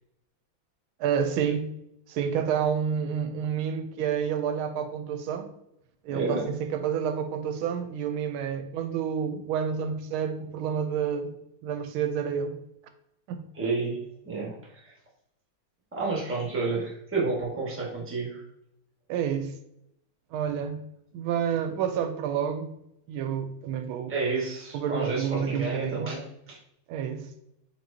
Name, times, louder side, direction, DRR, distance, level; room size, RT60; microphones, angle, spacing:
voice 1, 1.0-1.7 2.1-5.5 6.0-11.3 11.6-12.6 13.3-13.4 19.1-19.5 20.3-20.8 21.1-22.7 23.1-24.1 24.7-26.1 26.9-27.3, right 8 dB, 80° right, 8 dB, 1.4 m, -29 dB
voice 2, 6.1-6.5 13.5-14.9 15.9-18.4 24.1-26.6, right 3 dB, 10° right, -4 dB, 1.0 m, -30 dB
4.5 x 4.4 x 2.6 m, 0.80 s
omnidirectional pair, 2.3 m